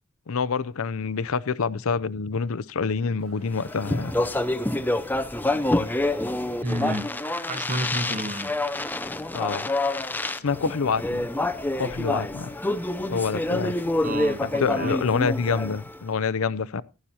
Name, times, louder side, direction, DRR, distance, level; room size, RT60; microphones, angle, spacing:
voice 1, 0.3-4.1 9.3-9.7 10.4-11.3 11.8-12.5 13.1-13.8 14.4-16.8, left 5 dB, 70° left, 0.5 m, -27 dB
sound 1, 3.2-15.0, right 2 dB, 80° right, 2.7 m, -51 dB
Speech, 3.6-16.0, left 2 dB, 10° left, 0.5 m, -27 dB
voice 2, 6.6-7.1 7.4-8.5 14.0-14.9, right 1 dB, 35° right, 1.3 m, -30 dB
15.0 x 11.5 x 2.8 m
head